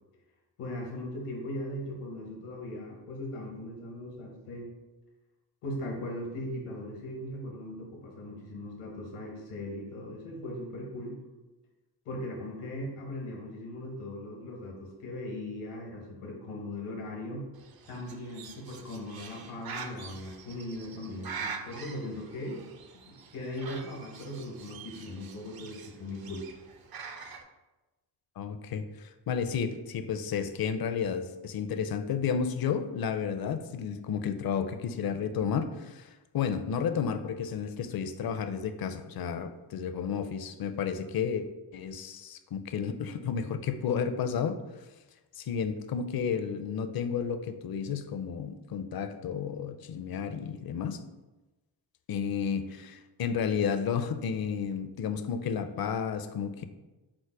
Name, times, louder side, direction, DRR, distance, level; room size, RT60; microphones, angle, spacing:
voice 1, 0.6-4.7 5.6-11.2 12.0-17.4 17.9-22.6 23.1-26.5, left 1 dB, 90° left, -1 dB, 1.2 m, -39 dB
Bird, 17.5-27.4, right 5 dB, 45° right, 0.6 m, -44 dB
voice 2, 28.4-28.8 29.3-44.6 45.4-51.0 52.1-56.6, left 7 dB, 50° left, 9 dB, 0.5 m, -32 dB
4.8 x 2.1 x 4.6 m, 1.1 s
supercardioid pair, 50°, 50 cm